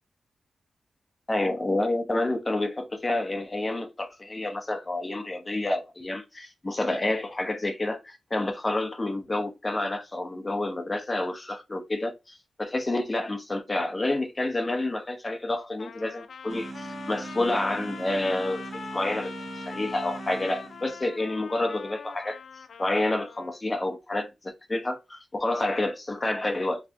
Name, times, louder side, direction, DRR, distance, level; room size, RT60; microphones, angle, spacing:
voice 1, 1.3-19.3 19.6-22.4 22.8-26.8, left 2 dB, 20° left, 0.9 m, -29 dB
Trumpet, 15.8-23.6, left 6 dB, 70° left, 0.5 m, -42 dB
sound 1, 16.5-21.2, right 3 dB, 35° right, 0.4 m, -40 dB
4.7 x 3.3 x 2.8 m
wide cardioid pair, 150°, 0 cm